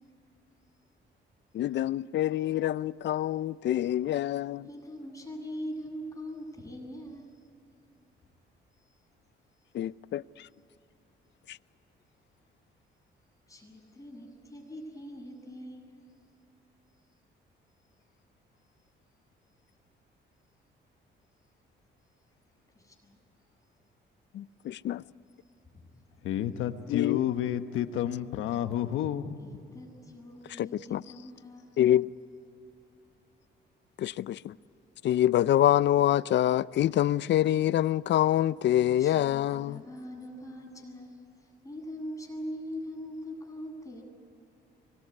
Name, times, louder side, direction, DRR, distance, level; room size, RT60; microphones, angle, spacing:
voice 1, 1.5-4.7 9.7-10.5 11.5-11.6 24.3-25.0 26.9-27.2 30.6-31.0 31.8-32.1 34.0-34.5 35.0-39.8, left 12 dB, 65° left, 0.6 m, -26 dB
voice 2, 4.6-7.3 13.5-16.0 22.7-23.2 29.4-31.7 39.0-44.0, equal, 15° left, 8.0 m, -42 dB
voice 3, 26.2-29.4, left 11 dB, 90° left, 1.3 m, -30 dB
25.0 x 21.5 x 9.8 m
cardioid pair, 90°, 20 cm